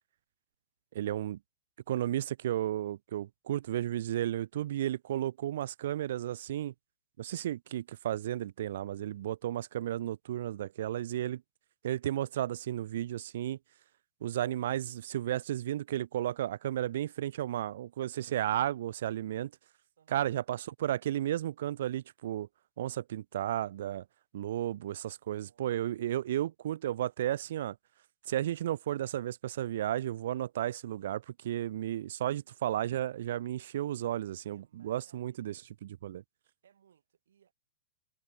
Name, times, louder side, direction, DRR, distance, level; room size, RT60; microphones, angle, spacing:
voice 1, 0.9-1.4 1.9-6.7 7.2-11.4 11.8-13.6 14.2-19.5 20.1-22.5 22.8-24.0 24.3-27.8 28.3-36.2, right 12 dB, 70° right, 0.5 m, -33 dB
voice 2, 20.0-20.4 25.2-25.9 34.0-35.9 36.6-37.5, right 9 dB, 85° right, 7.3 m, -67 dB
hypercardioid pair, 140°, 0 cm